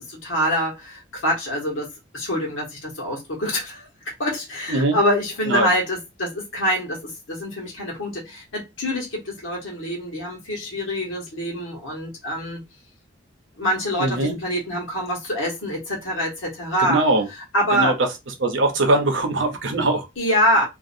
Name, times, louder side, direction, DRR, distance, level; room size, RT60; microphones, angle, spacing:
voice 1, 0.0-3.9 4.2-12.6 13.6-17.0 17.5-17.9 20.2-20.6, equal, 80° left, 1.4 m, -25 dB
voice 2, 14.0-14.4 16.8-17.3 17.7-17.9 18.4-20.1, right 2 dB, 70° right, 0.8 m, -21 dB
2.7 x 2.5 x 2.6 m
head